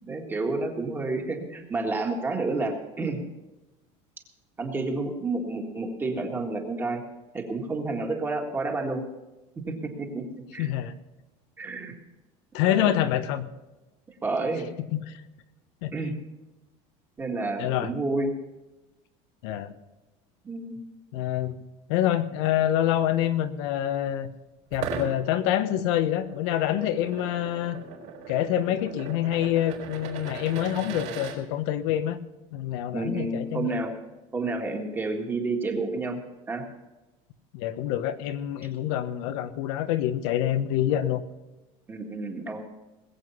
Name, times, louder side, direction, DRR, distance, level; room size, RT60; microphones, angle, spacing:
voice 1, 0.0-3.2 4.6-7.0 7.3-9.0 9.7-10.2 10.5-10.7 11.6-11.9 12.6-13.0 14.2-14.7 15.9-16.1 17.2-18.3 20.4-20.8 32.9-33.9 34.3-36.2 36.5-36.6 41.9-42.7, right 3 dB, 15° right, 3 dB, 1.8 m, -30 dB
voice 2, 10.6-10.9 12.5-13.5 14.9-15.1 15.8-15.9 17.6-17.9 19.4-19.7 21.1-21.6 21.9-24.3 24.7-27.8 28.3-32.2 32.5-33.8 37.5-41.2, left 11 dB, 85° left, 9 dB, 1.2 m, -26 dB
sound 1, 24.7-31.4, right 5 dB, 55° right, 3.9 m, -38 dB
20.5 x 8.1 x 5.7 m, 1.1 s
cardioid pair, 180°, 15 cm